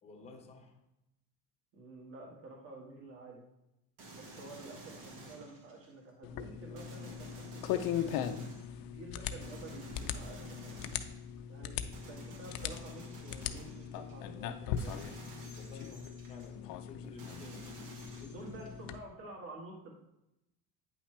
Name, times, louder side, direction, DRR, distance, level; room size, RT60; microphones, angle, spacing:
voice 1, 0.0-0.8 15.5-17.6 18.2-18.7, left 4 dB, 15° left, 3 dB, 0.8 m, -52 dB
voice 2, 1.7-3.4 4.1-8.3 8.8-10.7 11.5-15.0 17.0-19.9, right 2 dB, 35° right, -1 dB, 1.6 m, -50 dB
sound 1, 4.0-6.0 6.8-8.8 9.4-11.3 11.9-14.2 14.8-16.5 17.2-18.8, right 2 dB, 65° right, 1.8 m, -51 dB
sound 2, 6.2-19.0, left 9 dB, 65° left, 0.5 m, -40 dB
8.7 x 5.8 x 3.3 m, 0.88 s
cardioid pair, 180°, 38 cm